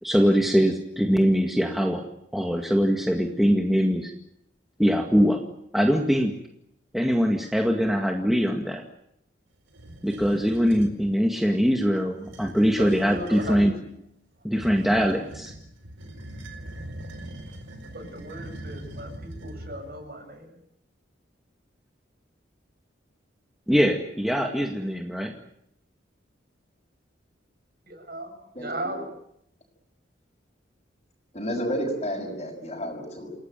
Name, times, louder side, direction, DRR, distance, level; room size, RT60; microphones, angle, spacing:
voice 1, 0.0-2.0 2.3-4.1 4.8-5.4 5.7-6.4 6.9-8.8 10.0-13.7 14.4-15.5 23.7-25.3, equal, ahead, 2 dB, 1.9 m, -22 dB
sound 1, 9.7-11.0 12.1-13.8 14.5-20.0, right 1 dB, 90° right, 4.5 m, -41 dB
voice 2, 12.8-13.9 17.9-20.6 27.9-29.1, right 1 dB, 50° right, 6 dB, 7.2 m, -37 dB
voice 3, 28.5-29.0 31.3-33.3, equal, 30° left, -4 dB, 6.0 m, -31 dB
29.0 x 18.5 x 9.2 m, 0.78 s
head